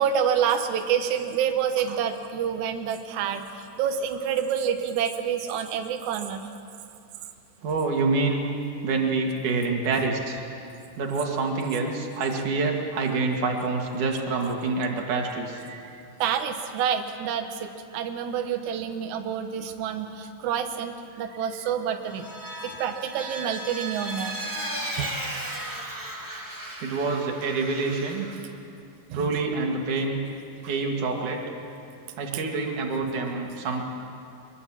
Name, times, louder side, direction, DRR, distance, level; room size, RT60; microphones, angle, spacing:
voice 1, 0.0-6.4 15.7-22.3 22.6-24.4 25.0-25.1 29.1-29.3 30.6-30.7, right 8 dB, 90° right, 6 dB, 1.6 m, -28 dB
voice 2, 7.6-8.4 8.8-10.4 10.9-15.6 26.8-28.3 29.1-30.2 30.7-31.4 32.2-33.9, right 3 dB, 50° right, 1 dB, 3.2 m, -26 dB
Vehicle, 22.0-28.4, right 1 dB, 10° right, 1.4 m, -35 dB
23.0 x 22.0 x 7.5 m, 2.6 s
omnidirectional pair, 5.1 m